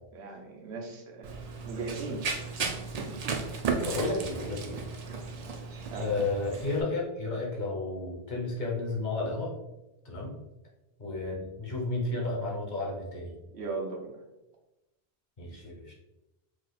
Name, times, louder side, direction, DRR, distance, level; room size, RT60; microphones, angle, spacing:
voice 1, 0.1-2.2 2.6-3.4 5.9-6.1 13.5-14.2, right 3 dB, 80° right, 2 dB, 1.0 m, -39 dB
Run, 1.2-6.8, right 4 dB, 55° right, 0.4 m, -35 dB
voice 2, 3.8-4.8 6.0-9.5 10.0-10.3 11.0-13.3 15.4-15.9, left 2 dB, 45° left, -2 dB, 1.0 m, -32 dB
3.1 x 2.4 x 4.0 m, 0.95 s
omnidirectional pair, 1.1 m